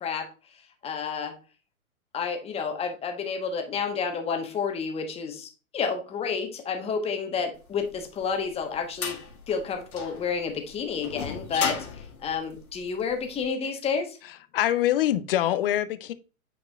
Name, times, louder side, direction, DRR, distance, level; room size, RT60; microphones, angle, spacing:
voice 1, 0.8-1.3 2.1-9.2 9.5-14.2, left 5 dB, 15° left, 1.1 m, -30 dB
sound 1, 7.9-13.3, left 6 dB, 75° left, 1.9 m, -35 dB
voice 2, 14.2-16.1, left 12 dB, 40° left, 0.6 m, -25 dB
8.9 x 4.8 x 2.3 m
hypercardioid pair, 125°, 43 cm